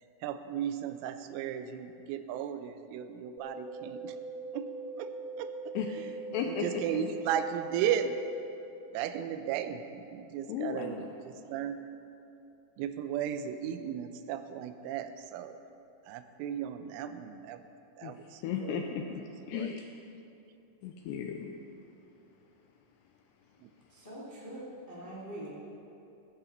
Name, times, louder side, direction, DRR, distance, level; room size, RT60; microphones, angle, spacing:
voice 1, 0.2-4.1 4.5-4.7 5.0-5.1 5.4-5.5 6.6-8.1 8.9-11.0 11.5-11.8 12.8-15.6 16.1-17.6 18.0-18.2 19.5-19.7, right 9 dB, 90° right, 9 dB, 3.2 m, -35 dB
sound 1, 3.4-8.4, right 3 dB, 70° right, 3.4 m, -41 dB
voice 2, 5.7-6.1 6.3-7.0 10.5-11.1 18.0-18.2 18.4-19.9 20.8-21.5, left 7 dB, 80° left, 3 dB, 2.5 m, -35 dB
voice 3, 23.9-25.5, right 1 dB, 30° left, -7 dB, 0.8 m, -43 dB
15.5 x 15.0 x 3.9 m, 2.8 s
omnidirectional pair, 5.6 m